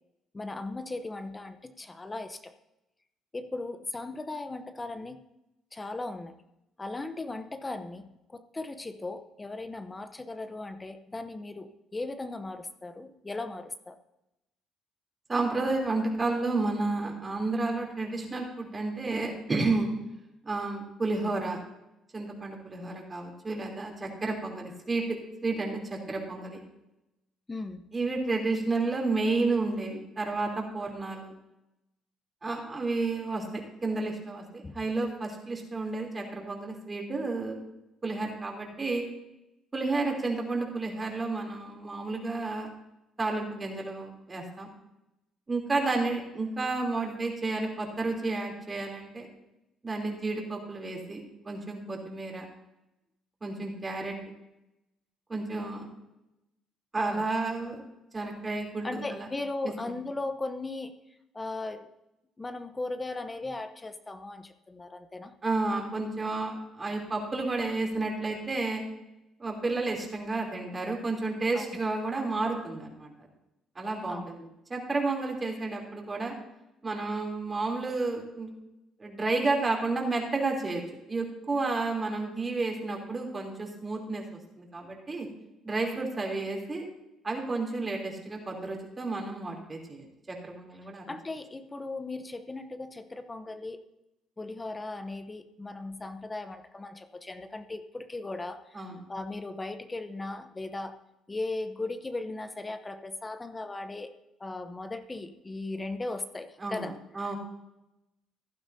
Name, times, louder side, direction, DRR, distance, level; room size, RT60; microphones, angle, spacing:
voice 1, 0.3-2.5 3.3-5.2 5.7-6.3 6.8-14.0 25.7-25.8 26.2-26.3 27.5-27.8 34.6-34.7 57.0-57.3 58.8-61.0 61.3-61.9 62.4-65.3 71.5-71.8 74.1-74.3 91.1-93.8 94.4-101.0 101.3-104.1 104.4-107.0, left 2 dB, 20° left, 9 dB, 0.8 m, -37 dB
voice 2, 15.3-19.9 20.4-21.6 22.1-26.6 27.9-31.3 32.4-37.6 38.0-39.0 39.7-42.7 43.2-44.7 45.5-49.3 49.8-52.4 53.4-54.1 55.3-55.9 56.9-57.8 58.1-59.3 65.4-68.8 69.4-73.1 73.7-76.3 76.8-78.5 79.0-80.8 81.1-84.2 84.6-85.3 85.6-86.8 87.2-91.1 98.7-99.0 106.6-107.4, right 3 dB, 25° right, 1 dB, 3.2 m, -31 dB
15.0 x 11.5 x 2.7 m, 0.91 s
cardioid pair, 85°, 0 cm